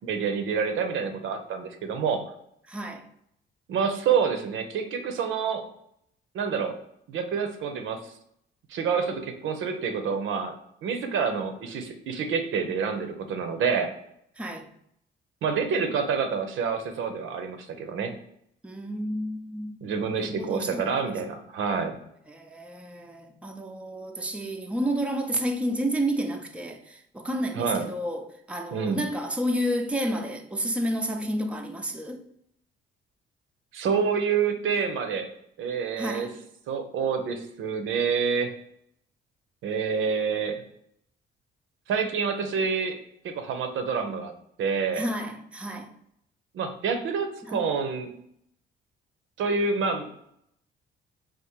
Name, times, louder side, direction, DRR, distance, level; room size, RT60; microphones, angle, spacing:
voice 1, 0.0-2.3 3.7-5.6 6.3-6.8 7.1-8.1 8.7-10.6 10.8-13.9 15.4-18.1 19.8-22.0 27.6-27.9 28.7-29.0 33.7-35.3 35.6-36.3 36.7-38.5 39.6-40.6 41.9-43.0 43.2-44.3 44.6-45.1 46.5-48.1 49.4-50.1, right 6 dB, 80° right, 0.7 m, -27 dB
voice 2, 2.7-3.0 14.4-14.7 18.6-19.8 20.2-20.9 22.3-32.2 36.0-36.3 44.9-45.9 47.5-47.6, equal, 5° right, 0.5 m, -30 dB
3.6 x 2.5 x 4.4 m
cardioid pair, 90°, 20 cm